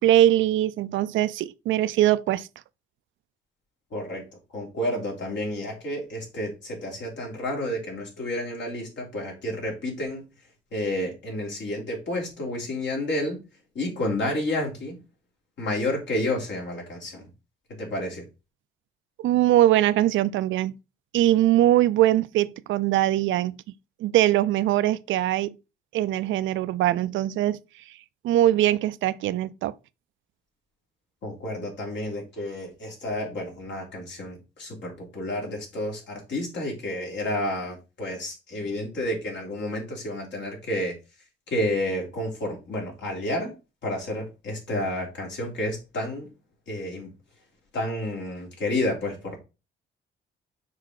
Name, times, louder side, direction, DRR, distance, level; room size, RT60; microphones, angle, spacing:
voice 1, 0.0-2.5 19.2-20.7 21.1-23.6 24.0-25.5 25.9-27.6 28.2-29.7, right 13 dB, 80° right, 0.4 m, -22 dB
voice 2, 3.9-4.3 4.5-10.2 10.7-13.4 13.8-15.0 15.6-17.3 17.8-18.2 31.2-40.9 41.5-43.6 43.8-46.3 46.7-47.1 47.7-49.4, left 1 dB, 65° left, 3.4 m, -30 dB
6.5 x 4.5 x 3.9 m
cardioid pair, 90°, 20 cm